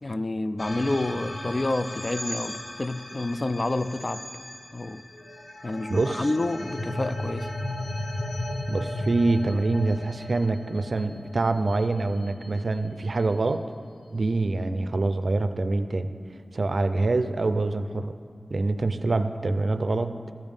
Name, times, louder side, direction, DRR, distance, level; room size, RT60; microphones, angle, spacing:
voice 1, 0.0-4.2 4.7-5.1 5.6-7.5, left 2 dB, 40° left, 11 dB, 0.3 m, -29 dB
sound 1, 0.6-13.0, left 1 dB, 80° left, 1.0 m, -35 dB
voice 2, 5.9-6.3 8.7-13.6 14.1-16.1 16.5-18.1 18.5-20.3, right 2 dB, 70° right, 10 dB, 0.4 m, -25 dB
14.5 x 5.2 x 5.3 m, 2.3 s
wide cardioid pair, 75°, 0 cm